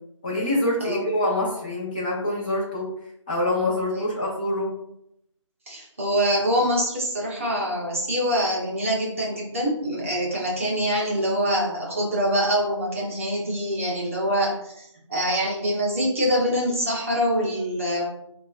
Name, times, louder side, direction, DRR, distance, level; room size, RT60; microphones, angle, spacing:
voice 1, 0.2-2.9 3.3-4.7, left 1 dB, 15° left, -7 dB, 1.0 m, -25 dB
voice 2, 5.7-18.0, equal, 25° right, -3 dB, 0.8 m, -25 dB
7.2 x 2.4 x 2.5 m, 0.77 s
figure-of-eight pair, 170°, 16 cm